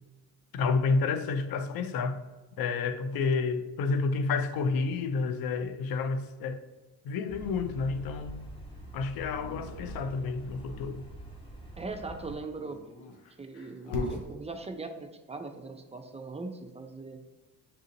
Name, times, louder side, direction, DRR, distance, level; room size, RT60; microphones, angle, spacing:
voice 1, 0.5-2.2 2.6-6.6 7.0-8.5 8.9-11.1, left 4 dB, 50° left, 0.5 m, -30 dB
sound 1, 7.3-12.4, right 1 dB, 10° left, 1.2 m, -45 dB
Dog, 9.3-10.9 12.4-14.3, left 2 dB, 65° left, 0.9 m, -39 dB
voice 2, 11.8-12.8 13.4-17.2, right 3 dB, 15° right, 0.4 m, -40 dB
6.9 x 2.5 x 2.7 m
hypercardioid pair, 50°, 50 cm